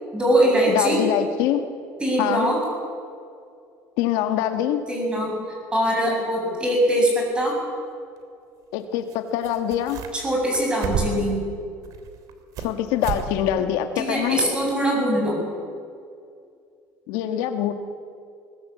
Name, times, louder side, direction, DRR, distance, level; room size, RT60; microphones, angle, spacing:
voice 1, 0.1-1.0 2.0-2.6 4.9-5.3 5.7-7.6 10.1-11.4 14.0-15.4, right 1 dB, 15° right, 0 dB, 7.6 m, -22 dB
voice 2, 0.7-1.6 2.2-2.5 4.0-4.8 8.7-10.0 12.6-14.4 17.1-17.7, left 10 dB, 75° left, 7 dB, 1.7 m, -24 dB
sound 1, 7.4-7.5 9.1-9.2 9.4-10.3 10.5-11.3 11.8-12.7 13.0-13.3 13.6-13.7 14.2-14.3, right 7 dB, 60° right, 3.4 m, -30 dB
21.0 x 20.5 x 8.4 m, 2.3 s
cardioid pair, 135°, 7 cm